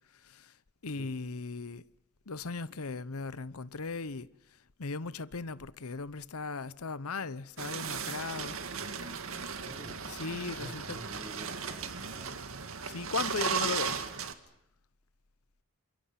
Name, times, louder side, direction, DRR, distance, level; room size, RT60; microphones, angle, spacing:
voice 1, 0.8-1.8 2.3-4.3 4.8-8.6 10.2-11.0 12.8-14.1, left 4 dB, 85° left, 0.9 m, -37 dB
sound 1, 7.6-14.3, right 6 dB, 70° right, 2.1 m, -36 dB
voice 2, 9.5-10.1 10.5-12.4, right 1 dB, 20° right, 3.2 m, -49 dB
28.0 x 28.0 x 5.9 m
head